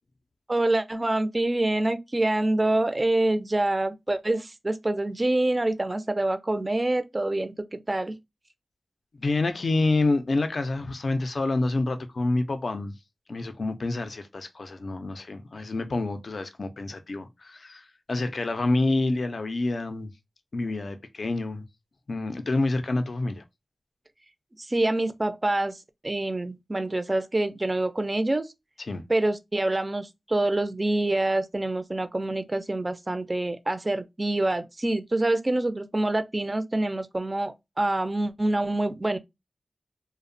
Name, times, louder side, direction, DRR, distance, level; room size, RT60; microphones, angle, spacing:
voice 1, 0.5-8.1 24.6-28.5 29.1-39.2, right 2 dB, 30° right, 0.3 m, -26 dB
voice 2, 9.2-12.9 13.3-20.1 20.5-21.6 22.1-23.4 28.9-29.0, left 2 dB, 60° left, 0.4 m, -27 dB
2.7 x 2.0 x 2.5 m
wide cardioid pair, 85°, 0 cm